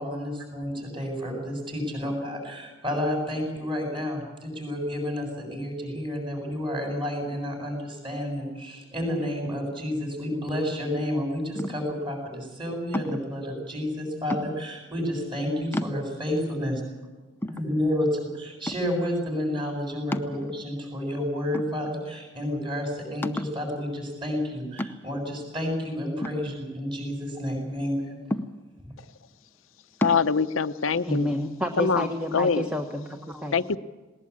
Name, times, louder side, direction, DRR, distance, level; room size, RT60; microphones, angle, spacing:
voice 1, 0.0-16.8 17.5-28.2, left 1 dB, 25° right, 2 dB, 8.0 m, -30 dB
sound 1, 11.6-12.0 12.9-13.4 14.3-14.8 15.3-15.4 15.7-16.4 16.9-17.0 17.4-18.2 18.7-19.1 20.1-20.8 21.5-22.2 22.5-22.6 23.2-23.7 24.8-25.3 26.2-27.1 28.3-28.9 30.0-30.3, left 1 dB, 10° left, 0.7 m, -32 dB
voice 2, 30.0-31.3 31.8-32.1 32.3-32.7 33.5-33.8, left 5 dB, 80° left, 11 dB, 0.7 m, -23 dB
voice 3, 31.0-33.6, equal, 5° right, 4 dB, 1.3 m, -29 dB
19.5 x 19.5 x 8.7 m, 1.2 s
head